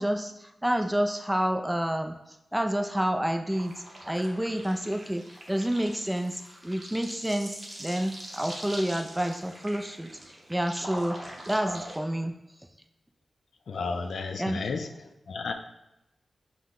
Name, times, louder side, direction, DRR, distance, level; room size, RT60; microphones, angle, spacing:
voice 1, 0.0-3.7 4.1-11.2 11.5-12.3 14.4-14.6, equal, 10° right, 5 dB, 0.3 m, -29 dB
sound 1, 3.5-12.0, right 1 dB, 30° right, 0.8 m, -43 dB
voice 2, 13.7-14.9 15.3-15.5, left 4 dB, 80° left, 7 dB, 0.3 m, -32 dB
5.6 x 2.1 x 3.6 m, 0.91 s
wide cardioid pair, 105°, 0 cm